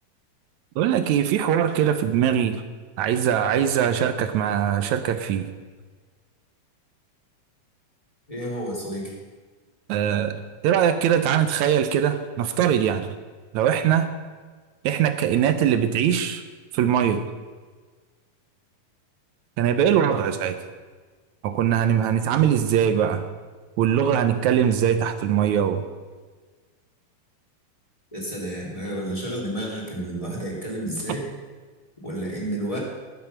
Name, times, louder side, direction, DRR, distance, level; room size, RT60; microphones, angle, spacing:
voice 1, 0.8-2.6 3.0-5.5 9.9-10.3 10.6-13.1 13.5-14.1 14.8-16.4 16.7-17.2 19.6-20.6 21.4-23.2 23.8-25.8, right 9 dB, 80° right, 9 dB, 1.7 m, -21 dB
voice 2, 8.3-9.1 28.1-31.2 32.0-32.8, right 1 dB, 10° left, -4 dB, 3.1 m, -30 dB
20.0 x 7.8 x 5.8 m, 1.4 s
omnidirectional pair, 4.1 m